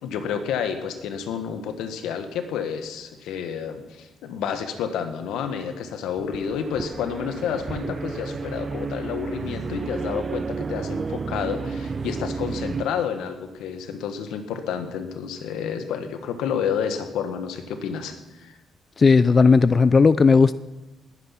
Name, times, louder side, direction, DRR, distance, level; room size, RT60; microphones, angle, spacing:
voice 1, 0.0-18.5, left 7 dB, 90° left, 7 dB, 1.6 m, -30 dB
sound 1, 6.2-12.9, right 4 dB, 35° right, 0.9 m, -31 dB
voice 2, 19.0-20.5, left 4 dB, 35° left, 15 dB, 0.4 m, -15 dB
20.0 x 9.6 x 5.9 m, 1.1 s
cardioid pair, 90°, 0 cm